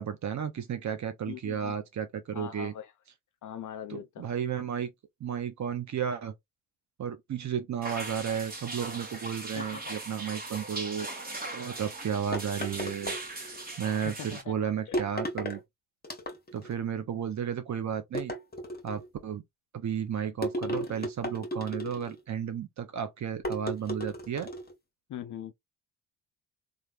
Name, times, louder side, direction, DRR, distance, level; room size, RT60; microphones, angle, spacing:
voice 1, 0.0-2.7 3.9-4.9 5.2-6.3 7.0-13.2 13.8-15.6 16.5-18.3 18.8-19.4 19.7-24.5, right 8 dB, 40° right, 0.7 m, -33 dB
voice 2, 1.3-1.7 2.3-2.9 3.4-4.3 9.1-9.2 9.5-10.0 14.0-14.6 14.9-15.0 25.1-25.5, left 10 dB, 45° left, 0.5 m, -41 dB
sound 1, 7.8-14.4, right 2 dB, 20° right, 1.3 m, -39 dB
sound 2, 12.3-13.7 14.9-15.6 16.0-16.7 18.1-19.1 20.4-22.2 23.4-24.7, equal, 20° left, 1.2 m, -35 dB
3.1 x 2.4 x 2.4 m
hypercardioid pair, 50°, 44 cm